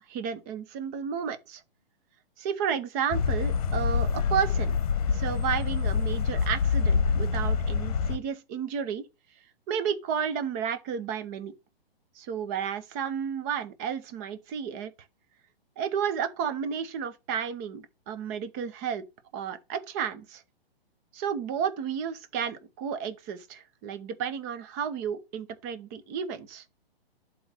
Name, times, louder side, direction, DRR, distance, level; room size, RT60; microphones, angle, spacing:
voice 1, 0.1-1.6 2.4-4.8 5.1-9.0 9.7-11.5 12.2-14.9 15.8-19.0 19.3-20.4 21.1-26.6, right 7 dB, 15° right, 0.5 m, -32 dB
sound 1, 3.1-8.2, left 5 dB, 40° left, 1.0 m, -26 dB
7.7 x 3.0 x 5.8 m
figure-of-eight pair, 125°, 31 cm